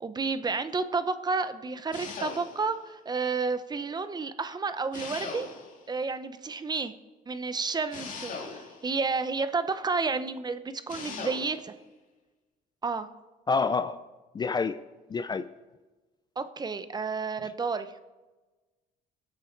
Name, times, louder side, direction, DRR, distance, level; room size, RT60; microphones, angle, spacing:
voice 1, 0.0-5.5 5.9-6.9 7.3-11.7 12.8-13.1 16.4-17.9, right 4 dB, 25° right, 11 dB, 0.8 m, -31 dB
sound 1, 1.9-2.8 4.9-5.9 7.9-8.9 10.9-11.7, left 4 dB, 50° left, 2.5 m, -39 dB
voice 2, 13.5-14.0 14.3-14.8 15.1-15.4, left 4 dB, 25° left, 13 dB, 0.5 m, -27 dB
23.5 x 8.2 x 4.6 m, 1.2 s
cardioid pair, 110°, 17 cm